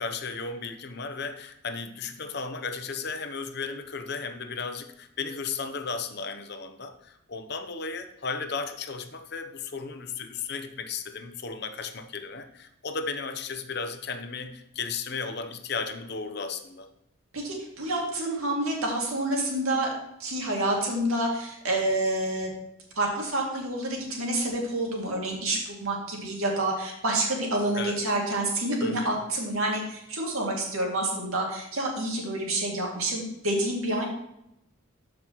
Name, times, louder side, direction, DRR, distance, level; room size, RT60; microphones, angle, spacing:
voice 1, 0.0-16.9 27.7-28.0 28.8-29.1, left 4 dB, 50° left, 8 dB, 0.7 m, -35 dB
voice 2, 17.3-19.9 20.2-22.5 23.0-34.0, right 1 dB, 80° right, -1 dB, 2.3 m, -28 dB
13.0 x 5.2 x 3.0 m, 0.82 s
head